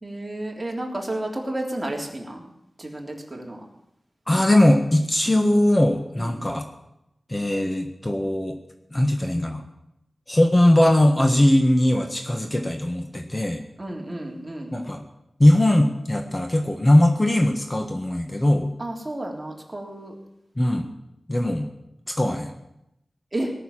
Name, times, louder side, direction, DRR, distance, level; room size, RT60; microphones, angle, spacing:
voice 1, 0.0-2.4 2.8-3.6 6.2-6.3 13.8-14.8 18.8-20.1 23.3-23.5, right 1 dB, 25° right, 0 dB, 3.4 m, -31 dB
voice 2, 4.3-6.7 7.3-8.6 8.9-9.6 10.3-13.6 14.7-15.0 15.4-18.7 20.6-20.9 21.3-21.7 22.1-22.5, left 1 dB, 25° left, 4 dB, 1.5 m, -20 dB
18.5 x 7.0 x 10.0 m, 0.82 s
wide cardioid pair, 80°, 0 cm